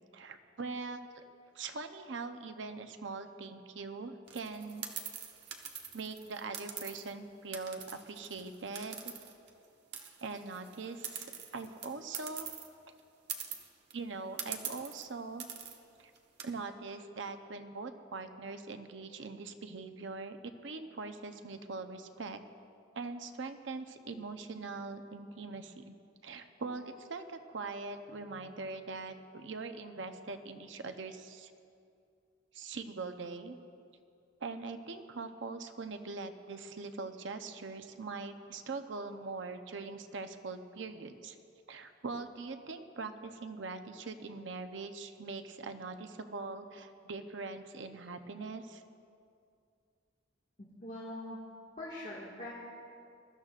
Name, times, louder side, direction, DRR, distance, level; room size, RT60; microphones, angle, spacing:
voice 1, 0.1-1.2 1.5-4.8 5.9-9.1 10.2-12.5 13.9-15.5 16.0-16.1 16.4-20.4 20.6-22.4 22.9-25.9 26.2-31.5 32.5-33.6 34.4-41.4 41.7-48.8, right 3 dB, 80° right, 7 dB, 0.7 m, -42 dB
sound 1, 4.3-7.1 7.5-9.7 9.9-12.7 13.0-13.1 13.3-13.9 14.4-15.1 15.4-15.8 16.2-16.4, right 8 dB, 65° right, 1.2 m, -43 dB
voice 2, 50.6-51.4 51.8-52.5, left 1 dB, 45° left, -7 dB, 1.8 m, -43 dB
22.5 x 13.5 x 2.5 m, 2.4 s
head